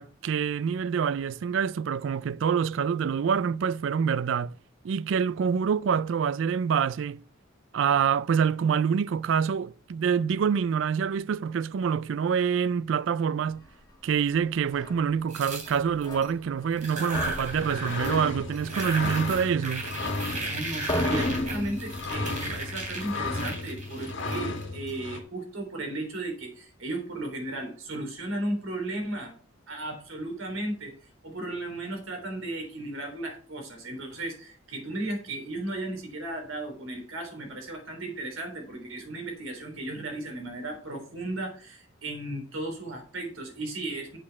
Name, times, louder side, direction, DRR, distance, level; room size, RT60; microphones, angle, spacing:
voice 1, 0.0-4.6 4.8-7.2 7.7-13.6 14.0-19.8, right 7 dB, 65° right, 0.3 m, -26 dB
Barbed Wire, 14.6-15.0 15.6-16.8 17.1-20.5 20.8-23.4, left 1 dB, 20° left, 2.1 m, -35 dB
sound 1, 15.3-16.3 16.7-18.3 18.5-24.9, right 2 dB, 40° right, 3.0 m, -36 dB
sound 2, 17.5-25.2, left 3 dB, 65° left, 1.7 m, -34 dB
voice 2, 20.4-29.3 29.7-30.9 31.2-44.2, right 2 dB, 85° right, 3.6 m, -35 dB
7.6 x 6.4 x 5.9 m
head